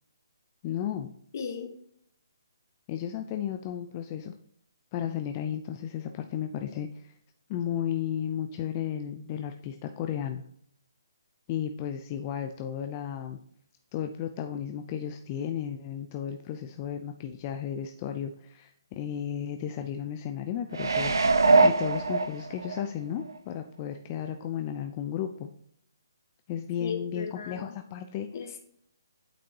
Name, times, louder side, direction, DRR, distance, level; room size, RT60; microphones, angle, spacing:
voice 1, 0.6-1.1 2.9-4.3 4.9-7.1 7.5-10.4 11.5-13.4 13.9-21.1 21.6-25.5 26.5-28.3, left 9 dB, 30° left, 6 dB, 0.5 m, -34 dB
voice 2, 1.3-1.7 26.8-27.7 28.3-28.6, left 6 dB, 50° left, 4 dB, 1.3 m, -36 dB
sound 1, 20.7-22.8 23.3-23.4, right 3 dB, 75° right, 0.8 m, -22 dB
8.7 x 5.3 x 2.8 m, 0.67 s
figure-of-eight pair, 145°, 2 cm